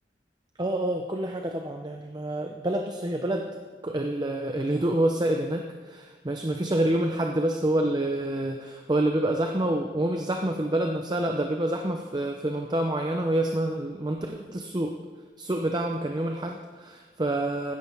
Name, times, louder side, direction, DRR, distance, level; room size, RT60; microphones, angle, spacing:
voice 1, 0.6-3.5 3.8-14.9 15.4-17.7, right 1 dB, 25° right, 3 dB, 0.6 m, -27 dB
16.0 x 12.5 x 3.5 m, 1.5 s
head